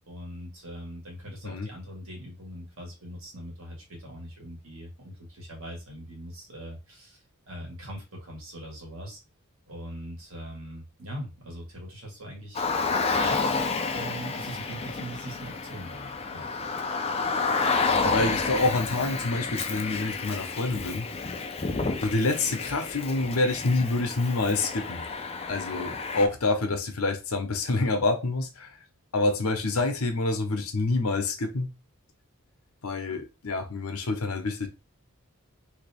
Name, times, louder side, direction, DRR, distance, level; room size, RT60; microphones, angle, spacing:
voice 1, 0.1-9.2 9.7-12.7 13.1-13.6 13.9-16.5, right 1 dB, 65° right, 1.9 m, -41 dB
Car, 12.5-26.3, left 4 dB, 30° left, 0.5 m, -30 dB
voice 2, 18.0-21.1 22.0-25.0 25.4-28.8 29.1-31.7 32.8-34.7, left 2 dB, 80° left, 0.9 m, -27 dB
3.4 x 2.9 x 3.4 m
head